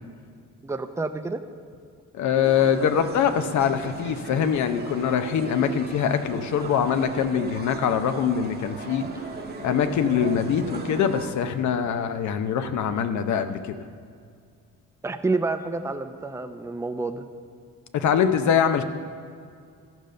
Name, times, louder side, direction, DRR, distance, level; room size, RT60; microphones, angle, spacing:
voice 1, 0.6-1.4 15.0-17.2, right 3 dB, 10° right, 7 dB, 0.6 m, -28 dB
voice 2, 2.1-9.1 9.6-13.8 17.9-18.8, left 8 dB, 70° left, 9 dB, 0.8 m, -23 dB
sound 1, 2.4-11.3, right 3 dB, 30° right, 1.2 m, -37 dB
13.5 x 5.1 x 6.6 m, 2.2 s
cardioid pair, 90°, 30 cm